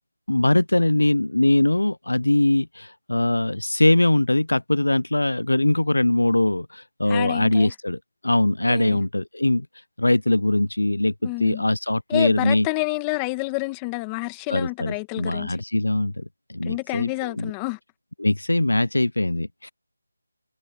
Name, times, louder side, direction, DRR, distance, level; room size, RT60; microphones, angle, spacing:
voice 1, 0.3-9.7 10.0-12.7 14.5-17.5 18.2-19.7, left 1 dB, 85° left, 0.8 m, -22 dB
voice 2, 7.1-7.7 8.7-9.0 11.2-11.7 12.1-15.6 16.6-17.8, left 27 dB, 15° left, 2.1 m, -28 dB
figure-of-eight pair, 165°, 0 cm